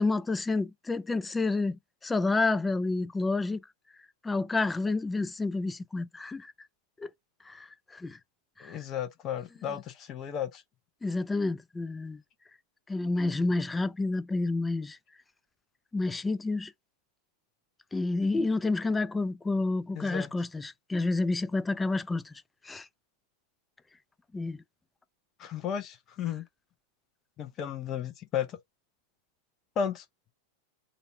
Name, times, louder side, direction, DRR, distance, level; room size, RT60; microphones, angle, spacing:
voice 1, 0.0-3.6 4.2-6.5 7.0-7.1 7.5-8.2 8.6-8.8 11.0-12.2 12.9-15.0 15.9-16.7 17.9-22.3 22.6-22.9 24.3-24.6, left 3 dB, 10° left, 0.4 m, -29 dB
voice 2, 8.6-10.6 19.9-20.3 25.4-26.4 27.4-28.6 29.8-30.0, left 8 dB, 30° left, 0.9 m, -34 dB
4.0 x 2.6 x 4.3 m
figure-of-eight pair, 90°, 0 cm